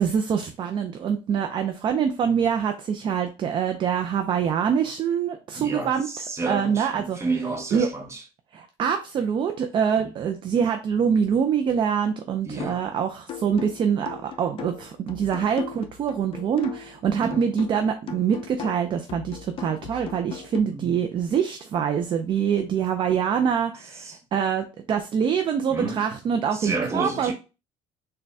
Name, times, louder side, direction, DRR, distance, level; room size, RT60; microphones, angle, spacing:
voice 1, 0.0-6.1 6.5-7.2 7.7-7.9 8.5-27.3, right 7 dB, 35° right, 0.4 m, -25 dB
voice 2, 5.6-8.2 12.5-12.8 17.2-17.5 20.7-21.0 24.0-24.2 25.7-26.0 26.5-27.3, right 3 dB, 20° right, 0.9 m, -30 dB
sound 1, 12.6-12.9 13.3-17.0 17.3-20.6, left 9 dB, 40° left, 0.6 m, -38 dB
4.0 x 2.2 x 3.4 m
supercardioid pair, 100°, 14 cm